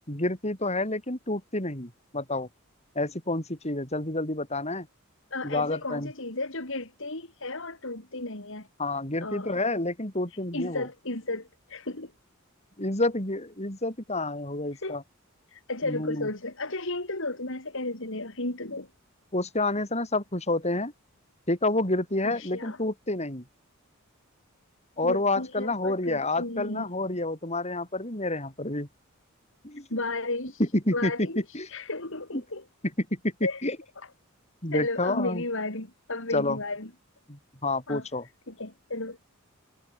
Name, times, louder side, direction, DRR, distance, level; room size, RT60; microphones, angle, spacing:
voice 1, 0.1-2.5 3.0-4.9 5.4-6.1 8.8-10.9 12.8-15.0 15.9-16.3 19.3-20.9 21.5-23.4 25.0-28.9 29.6-29.9 30.6-31.1 31.5-31.7 32.3-32.4 33.1-33.3 33.6-33.8 34.6-35.4 36.3-36.6 37.3-38.2, left 2 dB, 30° left, 7.5 m, -29 dB
voice 2, 5.3-8.7 9.2-9.6 10.5-12.1 14.8-15.0 15.5-18.9 22.2-22.8 25.0-26.9 29.9-30.6 30.9-32.6 33.4-33.7 34.0-34.1 34.7-36.9 37.9-38.1 38.5-39.2, left 2 dB, 65° left, 4.6 m, -34 dB
head